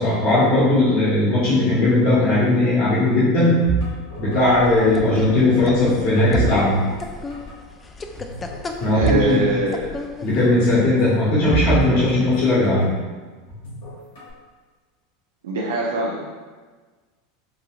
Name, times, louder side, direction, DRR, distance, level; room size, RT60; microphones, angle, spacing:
voice 1, 0.0-3.6 4.2-6.8 8.8-9.4 10.2-12.9, left 2 dB, 60° left, -10 dB, 1.3 m, -18 dB
sound 1, 3.6-5.2 5.5-7.1 7.3-7.5 8.1-9.3 9.5-9.6 10.8-12.9 13.5-14.3, right 4 dB, 90° left, 1.5 m, -27 dB
sound 2, 4.5-10.4, left 3 dB, 20° left, 0.3 m, -35 dB
voice 2, 8.9-9.9 15.4-16.2, right 2 dB, 85° right, -3 dB, 0.4 m, -22 dB
3.9 x 2.7 x 2.4 m, 1.4 s
hypercardioid pair, 100°, 0 cm